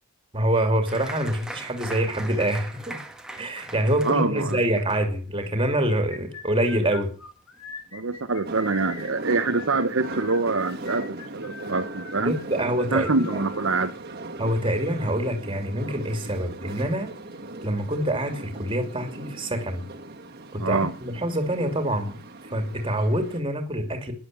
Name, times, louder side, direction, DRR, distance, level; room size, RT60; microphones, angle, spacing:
voice 1, 0.3-3.0 3.3-7.1 12.2-13.5 14.4-17.1 17.6-19.9 20.5-22.2 22.5-24.1, right 1 dB, 25° right, 2.7 m, -26 dB
Applause, 0.9-7.9 8.2-8.9 9.3-9.4 9.7-10.2, right 1 dB, 5° right, 1.6 m, -42 dB
voice 2, 4.0-4.6 7.9-12.3 12.9-13.9 20.6-20.9, right 3 dB, 60° right, 1.0 m, -25 dB
sound 1, 5.9-13.9, left 4 dB, 80° left, 3.0 m, -42 dB
sound 2, 8.4-23.4, right 2 dB, 45° right, 1.8 m, -39 dB
11.5 x 11.0 x 9.0 m
head